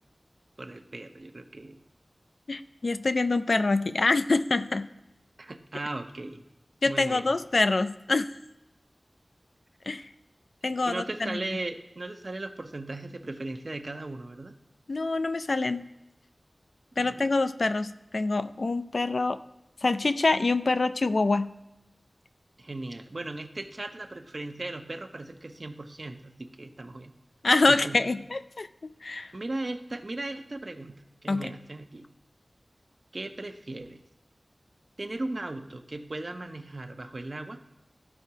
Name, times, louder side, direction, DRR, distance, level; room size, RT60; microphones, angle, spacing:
voice 1, 0.6-1.8 5.4-6.4 6.8-7.3 10.7-14.5 17.0-17.3 22.6-27.1 27.7-28.0 29.3-32.1 33.1-34.0 35.0-37.6, right 2 dB, 55° right, 7 dB, 0.7 m, -37 dB
voice 2, 2.5-4.9 6.8-8.3 9.9-10.1 10.6-11.4 14.9-15.8 17.0-19.4 19.8-21.6 27.4-29.3 31.3-31.5, left 3 dB, 75° left, 12 dB, 0.3 m, -26 dB
13.5 x 4.5 x 2.9 m, 0.94 s
wide cardioid pair, 60°, 0 cm